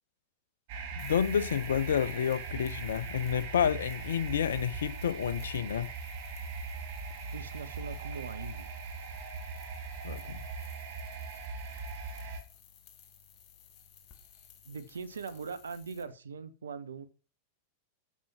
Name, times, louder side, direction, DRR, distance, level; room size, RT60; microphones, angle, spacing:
sound 1, 0.7-12.4, right 4 dB, 50° right, 2.3 m, -40 dB
voice 1, 1.0-5.9 10.0-10.5, left 8 dB, 65° left, 0.7 m, -30 dB
sound 2, 1.0-16.0, left 8 dB, 40° left, 2.0 m, -57 dB
voice 2, 7.3-8.8 14.6-17.1, right 5 dB, 70° right, 1.0 m, -41 dB
8.4 x 7.4 x 5.9 m
figure-of-eight pair, 90°, 0 cm